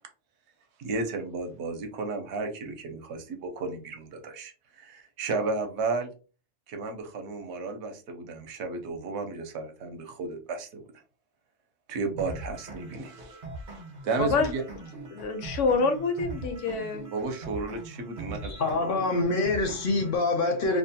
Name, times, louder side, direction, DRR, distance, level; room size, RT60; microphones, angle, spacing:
voice 1, 0.8-6.1 6.7-10.8 11.9-13.4 13.7-14.6 17.1-18.5, right 3 dB, 70° right, 0.8 m, -33 dB
sound 1, 12.2-20.2, right 2 dB, 50° right, 0.8 m, -41 dB
voice 2, 15.1-17.1, left 4 dB, 80° left, 0.9 m, -26 dB
voice 3, 18.4-20.8, left 3 dB, 60° left, 0.6 m, -26 dB
2.5 x 2.1 x 2.7 m
omnidirectional pair, 1.2 m